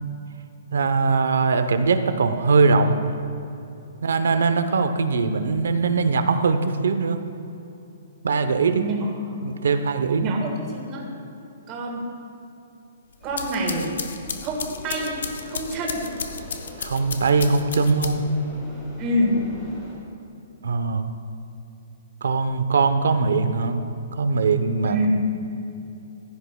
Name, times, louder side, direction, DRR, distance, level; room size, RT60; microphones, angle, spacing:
voice 1, 0.7-3.0 4.0-7.2 8.2-8.8 9.4-10.4 16.8-18.2 20.6-21.1 22.2-23.8 24.2-25.1, right 4 dB, 90° right, 8 dB, 0.7 m, -21 dB
voice 2, 8.7-9.3 10.2-11.1 11.7-12.0 13.2-13.9 14.4-15.2 15.4-16.0 19.0-19.5 24.8-25.1, right 1 dB, 20° right, -1 dB, 1.5 m, -26 dB
sound 1, 13.1-18.4, left 6 dB, 75° left, 0.7 m, -34 dB
sound 2, 13.2-20.0, equal, 5° left, 2.1 m, -42 dB
15.0 x 10.5 x 2.2 m, 2.8 s
hypercardioid pair, 175°, 0 cm